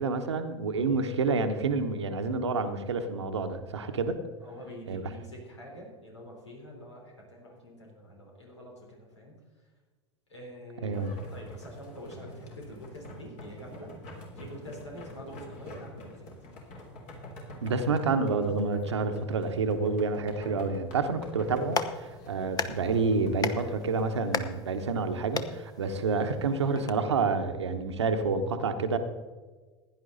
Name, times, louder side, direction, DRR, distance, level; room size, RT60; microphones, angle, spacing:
voice 1, 0.0-4.2 4.9-5.1 10.8-11.1 17.6-29.0, right 4 dB, 80° right, 8 dB, 1.1 m, -28 dB
voice 2, 4.2-9.3 10.3-16.3 22.3-22.7, equal, 85° left, -1 dB, 3.7 m, -46 dB
sound 1, 10.9-24.2, equal, 50° left, 3.3 m, -46 dB
Clapping, 21.4-26.9, left 5 dB, 25° left, 0.9 m, -37 dB
16.0 x 10.5 x 4.0 m, 1.3 s
figure-of-eight pair, 80°, 14 cm